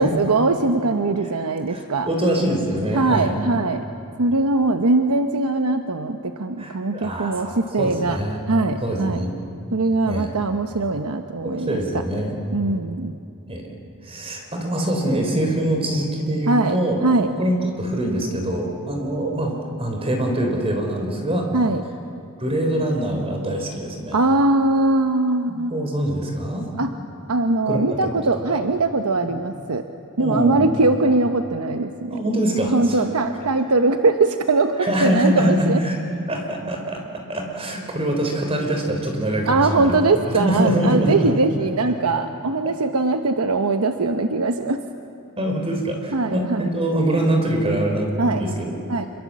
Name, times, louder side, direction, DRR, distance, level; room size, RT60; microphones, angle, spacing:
voice 1, 0.0-2.1 2.9-3.8 4.2-8.2 8.5-9.2 9.7-11.8 12.5-13.2 16.5-17.3 21.5-21.8 24.1-25.7 26.8-26.9 27.3-29.9 30.2-32.2 32.7-35.8 39.5-44.8 46.1-46.7 48.2-48.4 48.9-49.1, right 2 dB, 85° right, 7 dB, 1.0 m, -21 dB
voice 2, 1.7-3.3 6.6-8.4 8.8-9.3 10.1-10.3 11.4-12.7 13.5-17.0 17.4-21.5 22.4-24.2 25.5-26.7 27.7-27.9 28.5-28.6 29.2-29.4 30.2-30.7 32.1-33.0 34.8-36.0 36.3-37.0 37.3-41.4 45.4-48.8, right 1 dB, 25° right, 2 dB, 3.9 m, -24 dB
27.0 x 23.5 x 7.5 m, 2.5 s
head